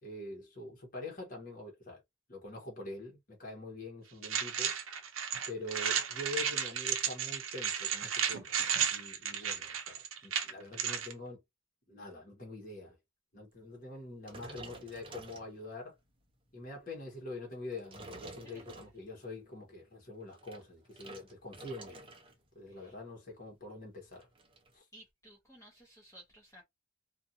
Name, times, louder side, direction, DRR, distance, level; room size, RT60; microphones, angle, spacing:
voice 1, 0.0-2.0 2.3-4.7 5.5-11.4 11.9-13.0 13.3-16.0 16.5-22.0 22.5-24.3 24.7-24.8, left 2 dB, 40° left, 1.2 m, -45 dB
sound 1, 4.2-11.1, right 8 dB, 75° right, 0.6 m, -33 dB
sound 2, 14.2-16.0 16.5-16.8 17.5-19.3 20.1-22.4 22.7-23.0 23.3-23.4 23.6-24.7, right 2 dB, 25° right, 0.7 m, -51 dB
voice 2, 18.4-18.9 22.7-22.9 24.9-26.6, right 1 dB, 15° left, 0.8 m, -57 dB
2.5 x 2.5 x 2.7 m
head